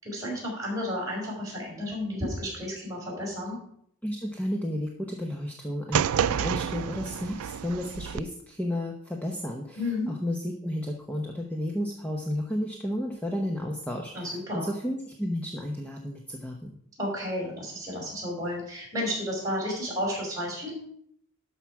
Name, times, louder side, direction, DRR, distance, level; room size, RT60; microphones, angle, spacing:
voice 1, 0.0-3.6 9.8-10.1 14.1-14.7 17.0-20.7, left 1 dB, 15° right, -2 dB, 4.9 m, -32 dB
voice 2, 4.0-9.8 10.1-14.3 14.5-16.8, left 1 dB, 5° left, 0 dB, 0.8 m, -32 dB
sound 1, 5.9-8.2, right 8 dB, 90° right, 0.4 m, -29 dB
12.0 x 5.8 x 4.7 m, 0.69 s
head